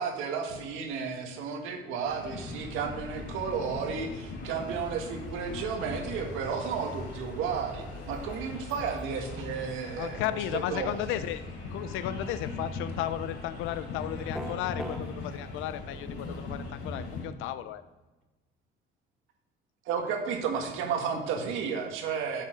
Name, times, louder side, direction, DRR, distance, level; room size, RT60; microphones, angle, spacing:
voice 1, 0.0-10.2 10.5-11.2 19.9-22.4, right 6 dB, 85° right, 3 dB, 1.7 m, -33 dB
sound 1, 2.0-17.3, left 2 dB, 65° left, 3.5 m, -40 dB
voice 2, 10.0-11.4 11.7-17.8, left 12 dB, 85° left, 13 dB, 0.5 m, -34 dB
sound 2, 14.3-15.0, equal, ahead, 0.7 m, -36 dB
8.6 x 6.7 x 5.0 m, 1.1 s
cardioid pair, 170°, 20 cm